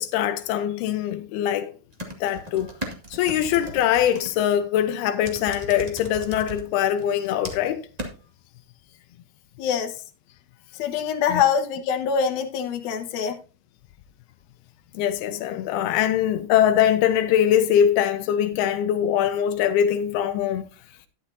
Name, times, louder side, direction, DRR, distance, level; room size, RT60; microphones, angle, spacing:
voice 1, 0.0-1.7 2.2-2.7 3.1-7.8 11.3-11.4 14.9-20.7, left 10 dB, 85° left, 2.7 m, -22 dB
sound 1, 1.9-4.3 5.2-6.6 7.0-7.7 8.0-8.1, right 1 dB, 45° right, 0.5 m, -36 dB
voice 2, 9.6-9.9 10.7-13.4, left 7 dB, 60° left, 2.3 m, -24 dB
12.0 x 11.0 x 2.7 m
omnidirectional pair, 4.5 m